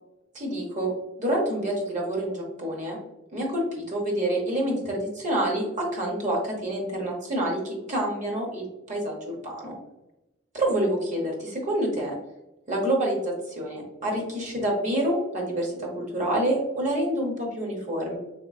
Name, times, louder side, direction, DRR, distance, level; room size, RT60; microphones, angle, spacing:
voice 1, 0.3-0.9 1.2-3.0 3.3-9.7 10.5-12.1 12.7-18.2, right 1 dB, 40° right, -1 dB, 0.9 m, -27 dB
3.6 x 2.9 x 2.3 m, 0.92 s
head